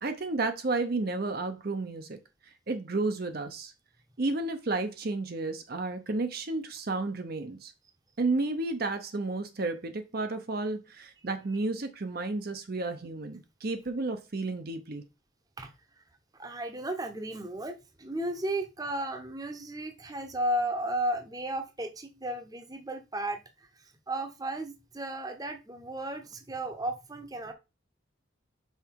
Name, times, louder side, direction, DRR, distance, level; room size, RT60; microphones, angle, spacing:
voice 1, 0.0-2.2 2.4-3.7 4.2-7.7 8.2-15.0, right 3 dB, 50° right, 0.7 m, -32 dB
voice 2, 16.4-23.4 24.1-27.5, right 1 dB, 20° right, 0.8 m, -34 dB
5.7 x 4.6 x 4.6 m
head